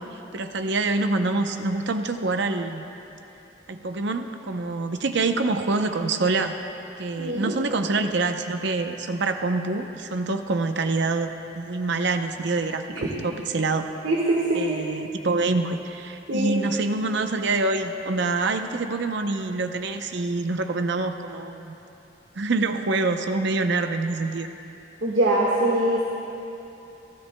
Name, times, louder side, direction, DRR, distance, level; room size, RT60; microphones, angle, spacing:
voice 1, 0.3-2.8 3.7-6.5 7.0-13.9 14.5-21.7 22.4-24.5, right 3 dB, 65° right, 7 dB, 0.7 m, -26 dB
voice 2, 7.2-7.5 14.0-14.8 16.3-16.5 25.0-26.0, right 1 dB, 85° right, -4 dB, 1.6 m, -23 dB
28.5 x 13.0 x 2.2 m, 3.0 s
head